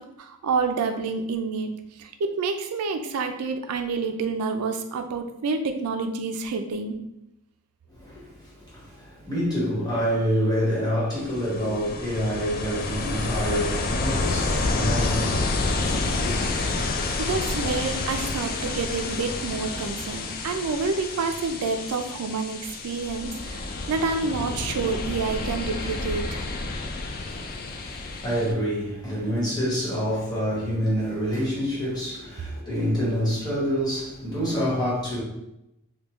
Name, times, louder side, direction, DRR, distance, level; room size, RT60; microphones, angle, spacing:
voice 1, 0.0-1.7 2.0-7.0 17.2-26.4, right 4 dB, 90° right, 0.4 m, -28 dB
voice 2, 7.9-16.4 27.2-35.2, equal, 20° left, 1.2 m, -27 dB
Ocean, 11.1-28.5, left 3 dB, 45° left, 0.3 m, -29 dB
3.4 x 2.2 x 3.0 m
head